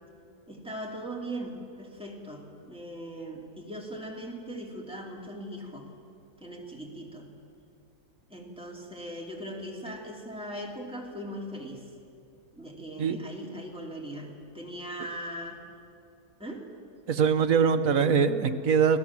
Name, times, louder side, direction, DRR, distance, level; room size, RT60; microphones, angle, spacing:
voice 1, 0.5-5.9 6.4-7.3 8.3-11.9 12.5-15.6 16.4-16.7, right 1 dB, 5° right, -2 dB, 2.9 m, -39 dB
voice 2, 17.1-19.0, right 6 dB, 60° right, 9 dB, 1.2 m, -23 dB
25.5 x 17.0 x 7.4 m, 2.6 s
omnidirectional pair, 1.7 m